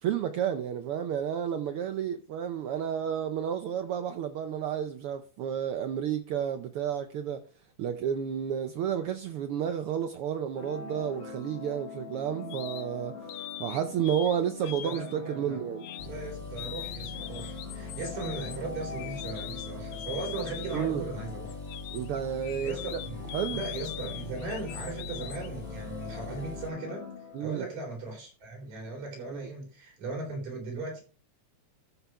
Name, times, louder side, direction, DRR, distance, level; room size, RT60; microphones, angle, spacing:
voice 1, 0.0-7.4 7.8-13.2 13.6-15.9 20.7-21.0 21.9-22.7 23.3-23.6 27.3-27.6 29.3-29.5, right 9 dB, 90° right, 1.2 m, -31 dB
sound 1, 10.6-27.8, left 5 dB, 55° left, 2.5 m, -43 dB
sound 2, 12.5-12.9 13.3-14.4 14.6-15.2 15.8-16.1 16.6-20.9 21.5-25.5, left 13 dB, 75° left, 1.7 m, -42 dB
voice 2, 14.6-15.6 16.0-21.6 22.6-23.2 23.5-27.1 27.4-31.0, right 3 dB, 70° right, 5.1 m, -38 dB
sound 3, 16.0-26.7, left 2 dB, 15° left, 3.1 m, -43 dB
13.0 x 5.6 x 4.6 m
omnidirectional pair, 3.3 m